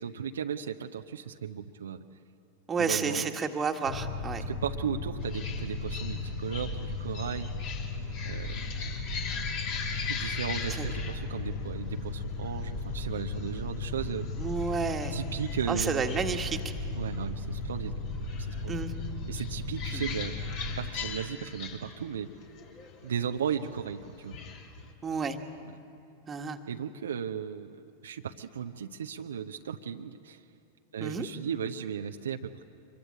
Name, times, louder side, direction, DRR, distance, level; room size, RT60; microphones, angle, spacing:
voice 1, 0.0-2.0 2.8-3.3 4.4-7.5 8.2-8.6 8.9-9.0 10.1-14.3 15.1-16.1 16.9-18.8 19.3-20.3 20.8-22.3 23.0-24.4 25.7-25.8 26.7-30.4 30.9-32.6, right 8 dB, 65° right, 6 dB, 0.8 m, -36 dB
voice 2, 2.7-4.4 10.8-10.9 14.4-15.2 15.7-16.6 18.7-18.9 19.9-20.0 25.0-25.4 26.3-26.6 31.0-31.3, right 5 dB, 20° right, 5 dB, 1.7 m, -30 dB
sound 1, 3.8-20.9, left 3 dB, 75° left, 5.4 m, -36 dB
sound 2, 5.2-24.9, left 6 dB, 45° left, 2.7 m, -42 dB
25.5 x 22.5 x 8.7 m, 2.5 s
figure-of-eight pair, 90°, 0 cm